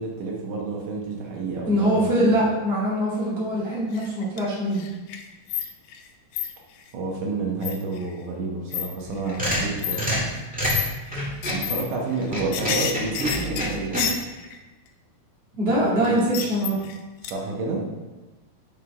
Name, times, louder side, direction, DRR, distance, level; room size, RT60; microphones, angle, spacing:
voice 1, 0.0-2.4 6.9-10.3 11.5-14.0 16.0-16.2 17.2-17.9, right 3 dB, 75° right, -2 dB, 2.7 m, -29 dB
voice 2, 1.7-4.8 15.6-16.8, equal, 20° right, -7 dB, 1.9 m, -23 dB
sound 1, 3.9-4.5 4.7-6.1 6.3-6.5 7.6-8.0 8.7-8.8 9.3-9.4 9.8-10.0 10.7-10.9 11.4-11.8 12.1-14.6 16.0-17.0 17.2-17.3, left 9 dB, 90° left, 2.3 m, -29 dB
sound 2, 9.0-11.7 12.2-14.0, equal, 5° right, 0.9 m, -27 dB
6.3 x 5.6 x 4.8 m, 1.2 s
omnidirectional pair, 3.9 m